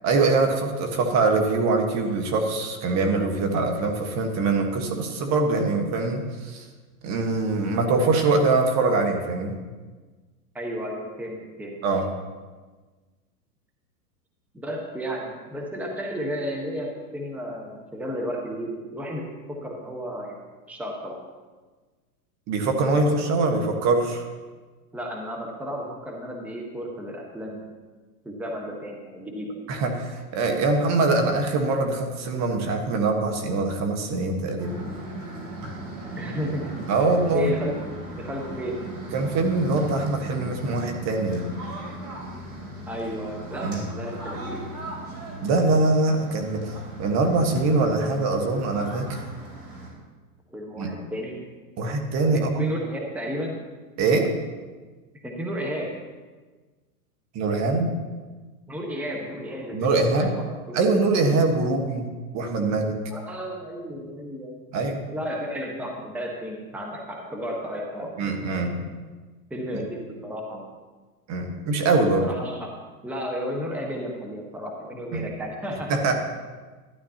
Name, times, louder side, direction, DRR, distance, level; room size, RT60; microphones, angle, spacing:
voice 1, 0.0-6.7 7.0-9.6 11.8-12.1 22.5-24.2 29.7-34.8 36.9-37.5 39.1-41.5 43.6-43.9 45.4-46.7 47.0-49.2 50.8-50.9 51.8-52.7 54.0-54.3 57.3-57.9 59.7-60.3 60.7-62.1 62.3-63.0 64.7-65.0 68.2-68.9 71.3-72.3 75.1-75.3 75.9-76.2, right 3 dB, 35° right, 4 dB, 1.4 m, -23 dB
voice 2, 10.5-11.8 14.5-20.4 20.7-21.2 24.9-27.7 28.2-29.6 36.2-36.9 37.3-37.8 38.2-38.8 42.9-44.8 50.5-51.5 52.3-53.7 55.2-55.9 58.7-61.0 63.1-64.6 65.1-68.2 69.5-70.7 72.2-72.7 73.0-75.9, equal, 5° right, 0 dB, 1.2 m, -33 dB
sound 1, 34.6-49.9, right 1 dB, 70° right, 3.7 m, -37 dB
12.0 x 11.5 x 2.9 m, 1.4 s
hypercardioid pair, 115°, 46 cm